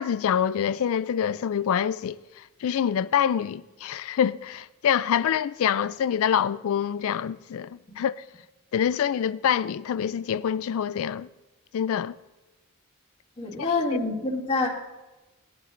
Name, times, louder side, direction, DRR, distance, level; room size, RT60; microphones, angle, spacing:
voice 1, 0.0-8.2 8.7-11.3 11.7-12.1 13.9-14.0, left 8 dB, 65° left, 0.3 m, -26 dB
voice 2, 13.4-14.7, left 3 dB, 30° left, 2.5 m, -26 dB
19.5 x 11.0 x 2.6 m
head